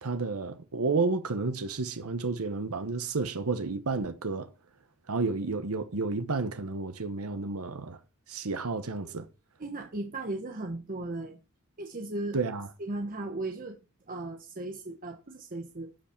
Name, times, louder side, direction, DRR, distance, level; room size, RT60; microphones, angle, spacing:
voice 1, 0.0-4.5 5.1-8.0 8.3-9.3 12.3-12.7, right 3 dB, 85° right, 1.0 m, -31 dB
voice 2, 9.6-11.4 11.8-12.4 12.8-13.8 14.1-15.9, right 2 dB, 40° right, 1.2 m, -36 dB
12.5 x 7.3 x 4.5 m
head